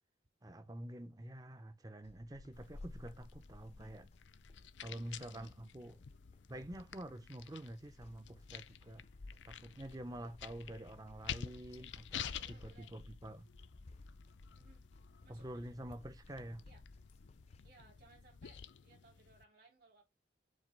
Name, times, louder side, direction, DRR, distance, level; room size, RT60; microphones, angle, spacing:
voice 1, 0.4-4.1 4.8-6.0 6.5-9.0 9.4-13.5 15.3-16.7, right 1 dB, 20° right, 0.6 m, -48 dB
sound 1, 2.0-17.8, left 2 dB, 35° left, 0.5 m, -58 dB
sound 2, 2.5-19.4, left 8 dB, 90° left, 0.5 m, -51 dB
voice 2, 12.1-12.9 14.6-14.9 15.2-15.8 16.6-16.8 17.6-20.0, right 3 dB, 55° right, 3.6 m, -64 dB
7.6 x 2.9 x 5.3 m
head